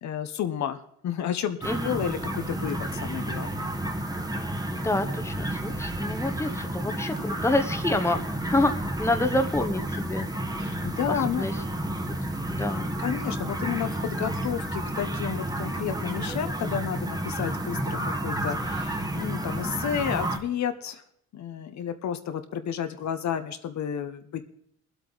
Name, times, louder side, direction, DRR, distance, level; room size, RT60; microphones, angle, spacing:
voice 1, 0.0-3.7 10.6-11.5 13.0-21.0 21.3-24.4, left 9 dB, 65° left, 8 dB, 1.0 m, -31 dB
sound 1, 1.6-20.4, right 1 dB, 10° right, 1.4 m, -31 dB
voice 2, 4.7-10.3 11.1-11.5 12.1-12.2 12.5-12.9, left 2 dB, 10° left, 7 dB, 1.1 m, -28 dB
21.5 x 8.0 x 4.0 m, 0.68 s
cardioid pair, 90°, 30 cm